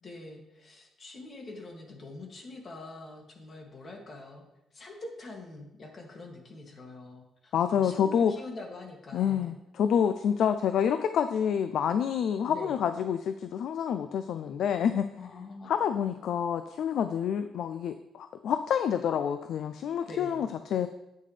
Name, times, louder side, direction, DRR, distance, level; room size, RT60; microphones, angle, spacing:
voice 1, 0.0-4.4 4.7-9.5 12.5-12.8 15.2-15.7 20.1-20.5, left 2 dB, 45° left, 0 dB, 2.3 m, -45 dB
voice 2, 7.5-8.3 9.1-15.1 15.7-20.9, left 8 dB, 70° left, 10 dB, 0.4 m, -28 dB
9.6 x 8.4 x 3.3 m, 0.89 s
cardioid pair, 90°, 0 cm